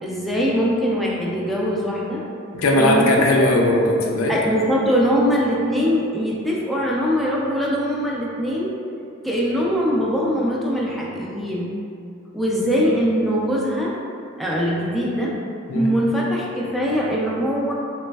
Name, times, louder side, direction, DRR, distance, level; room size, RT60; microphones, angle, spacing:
voice 1, 0.0-2.2 2.8-3.1 3.4-3.5 4.3-8.7 9.2-11.7 12.3-13.9 14.4-15.3 15.7-17.7, equal, ahead, -5 dB, 0.3 m, -22 dB
voice 2, 2.5-4.4 15.7-15.9, left 1 dB, 75° left, 0 dB, 0.4 m, -18 dB
3.3 x 3.0 x 2.2 m, 2.5 s
head